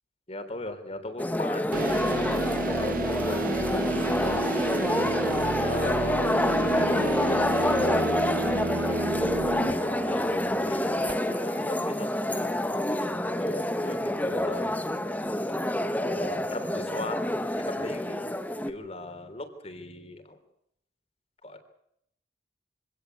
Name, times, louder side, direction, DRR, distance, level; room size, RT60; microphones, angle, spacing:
voice 1, 0.3-4.5 5.6-8.1 8.8-12.5 13.4-14.7 16.0-17.2 17.5-18.3 18.7-20.4 21.4-21.6, left 1 dB, 35° left, 8 dB, 3.5 m, -38 dB
sound 1, 1.2-18.7, left 1 dB, 10° left, 1.4 m, -27 dB
sound 2, 1.7-11.7, right 3 dB, 55° right, 0.9 m, -32 dB
25.0 x 17.5 x 8.4 m, 0.75 s
head